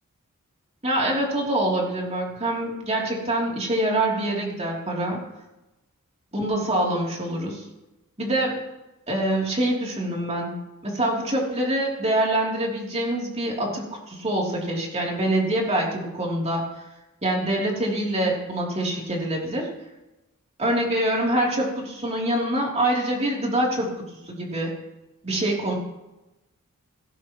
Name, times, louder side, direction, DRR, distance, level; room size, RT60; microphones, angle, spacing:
voice 1, 0.8-5.2 6.3-7.6 8.2-8.6 9.1-10.6 10.8-16.6 17.2-19.7 20.6-23.9 24.3-24.7 25.2-25.8, right 1 dB, 30° right, -2 dB, 3.2 m, -25 dB
17.5 x 16.5 x 3.1 m, 0.99 s
head